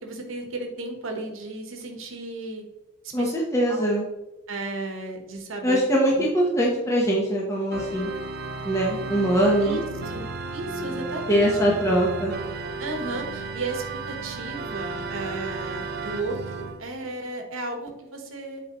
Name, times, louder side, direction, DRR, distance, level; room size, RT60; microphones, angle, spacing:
voice 1, 0.0-2.6 3.0-3.3 3.7-3.9 4.5-5.8 6.1-6.3 9.6-10.2 10.5-11.5 12.8-18.6, right 2 dB, 70° right, 3 dB, 1.1 m, -34 dB
voice 2, 3.1-4.0 5.6-8.1 8.6-9.8 11.3-12.3, equal, 15° left, -3 dB, 0.8 m, -22 dB
Organ, 7.7-16.8, right 3 dB, 45° right, 0.5 m, -34 dB
8.4 x 4.4 x 2.9 m, 0.99 s
head